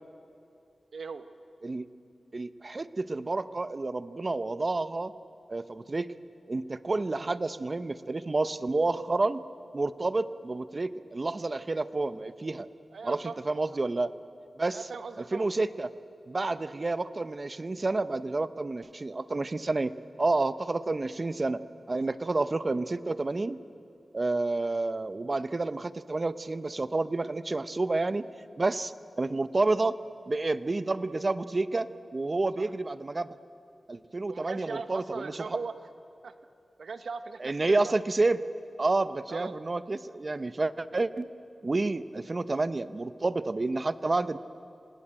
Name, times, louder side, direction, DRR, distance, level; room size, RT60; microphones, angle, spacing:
voice 1, 0.9-1.2 12.9-13.4 13.7-13.8 14.7-15.5 32.6-32.7 34.3-35.7 36.2-36.4 36.8-37.9 39.3-39.6, right 4 dB, 85° right, 9 dB, 1.0 m, -39 dB
voice 2, 2.3-5.1 5.5-6.1 6.5-9.4 9.7-12.7 13.0-13.2 13.4-14.1 14.6-14.8 15.3-15.9 16.3-19.9 20.2-21.6 21.9-23.6 24.1-28.2 28.6-30.0 30.3-33.3 33.9-35.4 37.4-38.4 38.8-41.3 41.6-44.4, right 2 dB, 45° right, 13 dB, 0.8 m, -29 dB
28.0 x 19.0 x 8.8 m, 2.6 s
wide cardioid pair, 60°, 0 cm